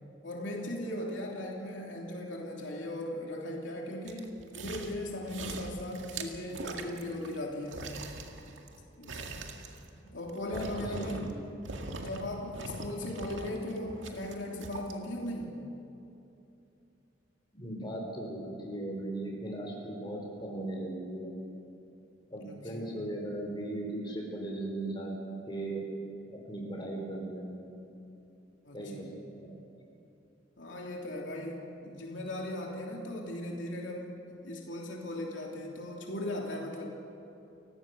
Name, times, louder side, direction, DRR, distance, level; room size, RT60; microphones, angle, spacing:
voice 1, 0.2-7.9 9.0-9.2 10.1-11.4 11.9-15.6 22.4-22.9 28.6-29.2 30.6-34.1 34.4-36.9, left 1 dB, 85° left, -1 dB, 3.1 m, -38 dB
sound 1, 4.1-5.0 5.3-7.4 7.7-11.4 11.6-12.2 12.5-14.9 15.4-15.5, right 3 dB, 85° right, 2.0 m, -42 dB
voice 2, 10.5-11.5 17.5-21.4 22.3-25.1 25.5-25.8 26.5-27.7 28.7-29.1 29.4-29.7, right 1 dB, 25° left, 0 dB, 4.5 m, -38 dB
30.0 x 16.5 x 6.3 m, 2.8 s
head